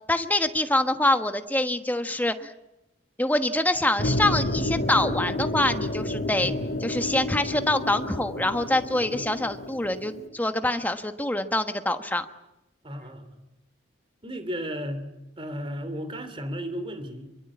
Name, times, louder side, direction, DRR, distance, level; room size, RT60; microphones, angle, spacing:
voice 1, 0.1-2.5 3.2-6.5 6.8-12.2, left 1 dB, 10° left, 8 dB, 1.3 m, -25 dB
sound 1, 4.0-10.3, left 1 dB, 50° left, 2.3 m, -30 dB
voice 2, 6.3-6.6 9.1-9.2 12.8-13.4 14.2-15.1 15.4-17.3, equal, 25° right, 10 dB, 2.9 m, -34 dB
25.5 x 23.0 x 8.6 m, 0.94 s
head